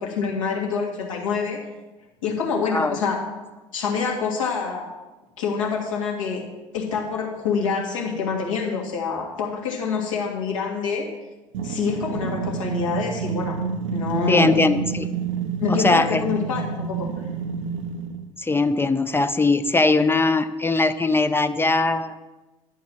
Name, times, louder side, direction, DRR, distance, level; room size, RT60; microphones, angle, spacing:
voice 1, 0.0-1.6 2.2-3.2 3.7-4.8 5.4-6.4 6.7-11.0 11.6-13.6 13.9-14.6 15.6-17.1, left 5 dB, 75° left, -1 dB, 1.9 m, -26 dB
sound 1, 11.5-18.3, right 5 dB, 70° right, 0.6 m, -29 dB
voice 2, 14.3-15.1 15.7-16.2 18.4-22.1, left 3 dB, 15° left, 10 dB, 0.5 m, -20 dB
10.0 x 4.6 x 7.5 m, 1.1 s
figure-of-eight pair, 60°, 17 cm